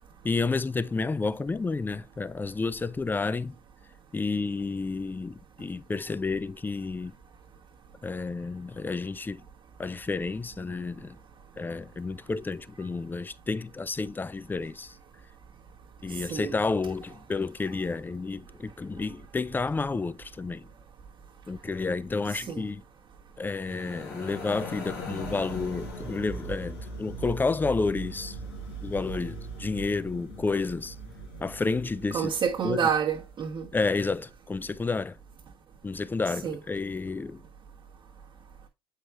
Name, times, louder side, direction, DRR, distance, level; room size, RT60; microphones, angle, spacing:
voice 1, 0.2-3.6 4.1-7.1 8.0-9.4 9.8-11.2 11.6-15.0 16.0-20.7 21.5-22.8 23.4-28.4 28.8-31.0 31.4-32.3 32.6-32.9 33.7-35.2 35.8-37.4, left 4 dB, 15° left, 0.4 m, -30 dB
voice 2, 22.3-22.7 32.1-33.7 36.4-36.6, right 7 dB, 40° right, 1.3 m, -28 dB
sound 1, 23.5-32.8, right 1 dB, 85° left, 2.8 m, -40 dB
7.8 x 4.8 x 3.0 m
hypercardioid pair, 70°, 13 cm